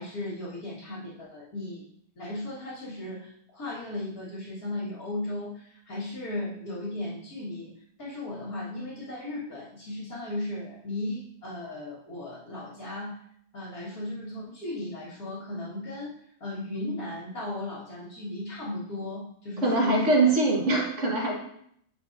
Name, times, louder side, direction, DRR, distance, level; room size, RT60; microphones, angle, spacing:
voice 1, 0.0-1.8 2.2-7.7 8.0-13.2 13.5-16.1 16.4-20.3, left 1 dB, 65° left, -10 dB, 2.3 m, -36 dB
voice 2, 19.6-21.4, right 2 dB, 50° right, -2 dB, 1.9 m, -23 dB
9.2 x 6.5 x 2.7 m, 0.70 s
omnidirectional pair, 1.7 m